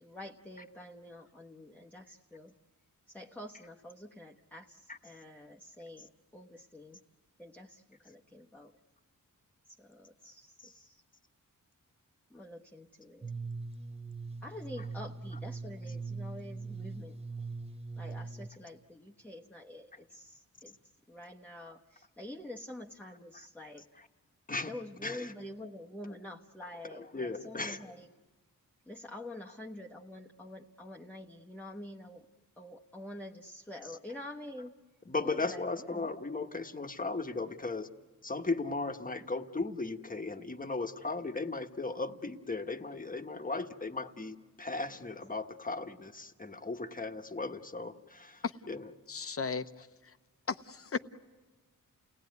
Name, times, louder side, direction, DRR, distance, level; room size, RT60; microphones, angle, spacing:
voice 1, 0.0-2.5 3.1-7.0 7.4-8.7 9.7-11.0 12.3-13.3 14.4-17.2 18.0-20.7 21.1-23.9 24.7-28.1 28.9-32.3 32.6-34.7 35.2-36.1, left 1 dB, 5° left, -2 dB, 1.1 m, -47 dB
sound 1, 13.2-18.5, right 4 dB, 20° right, 0.9 m, -41 dB
voice 2, 25.0-25.3 26.0-26.2 26.8-27.8 33.8-33.9 35.0-37.9 38.2-48.9, left 3 dB, 25° left, 6 dB, 1.3 m, -37 dB
voice 3, 49.1-50.2 50.5-51.0, left 5 dB, 40° left, 10 dB, 0.9 m, -36 dB
30.0 x 18.5 x 9.5 m, 1.3 s
wide cardioid pair, 115°, 33 cm